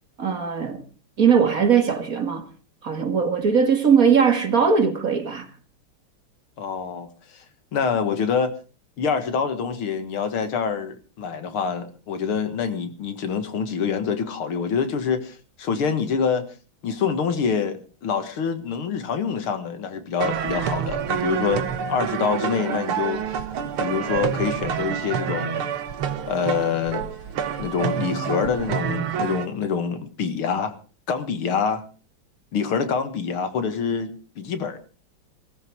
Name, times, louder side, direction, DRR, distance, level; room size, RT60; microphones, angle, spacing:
voice 1, 0.2-0.8 1.2-2.5 2.8-5.5, right 6 dB, 45° right, 2.0 m, -20 dB
voice 2, 6.6-7.1 7.3-7.4 7.7-8.5 9.0-16.5 16.8-23.4 23.8-25.7 26.3-27.0 27.6-30.7 31.1-31.8 32.5-34.8, left 6 dB, 80° left, 2.6 m, -26 dB
sound 1, 20.2-29.5, right 8 dB, 85° right, 2.1 m, -27 dB
17.0 x 15.0 x 4.7 m
omnidirectional pair, 2.3 m